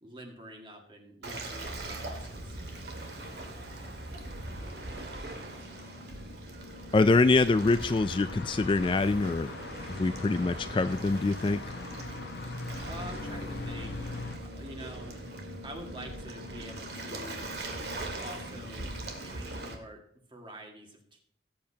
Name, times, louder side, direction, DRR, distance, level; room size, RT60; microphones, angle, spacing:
voice 1, 0.0-2.6 12.8-14.1 14.4-15.2 15.6-17.5 18.2-18.9 19.2-20.0 20.3-21.2, equal, 30° right, 2 dB, 2.0 m, -46 dB
Waves surf, 1.2-19.7, right 1 dB, 65° right, 2.0 m, -41 dB
voice 2, 6.9-9.5 10.0-11.6, left 3 dB, 30° left, 12 dB, 0.3 m, -24 dB
sound 1, 7.5-14.4, left 3 dB, 70° left, 1.1 m, -41 dB
17.5 x 8.6 x 2.9 m, 0.63 s
head